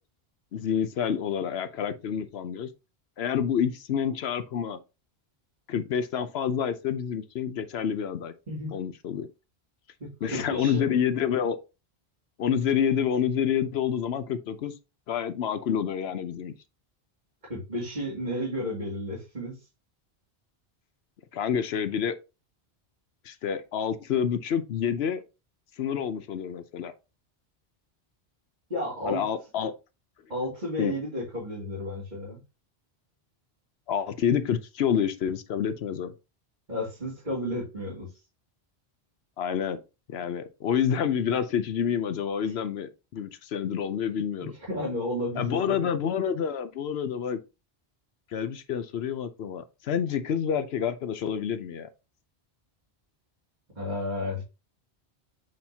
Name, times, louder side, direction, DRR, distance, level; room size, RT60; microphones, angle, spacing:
voice 1, 0.5-2.7 3.2-4.8 5.7-8.3 8.7-9.3 10.2-11.6 12.4-14.7 15.1-16.5 21.3-22.1 23.2-25.2 25.8-26.9 29.1-29.7 30.8-30.9 33.9-36.1 39.4-39.8 40.1-44.5 45.4-47.4 48.3-51.9, left 8 dB, 75° left, 0.9 m, -28 dB
voice 2, 8.5-8.8 10.0-10.9 17.5-19.6 28.7-29.2 30.3-32.4 36.7-38.1 42.4-42.5 44.4-45.9 53.8-54.4, left 1 dB, 45° right, 2.6 m, -32 dB
7.8 x 4.3 x 2.8 m
omnidirectional pair, 1.1 m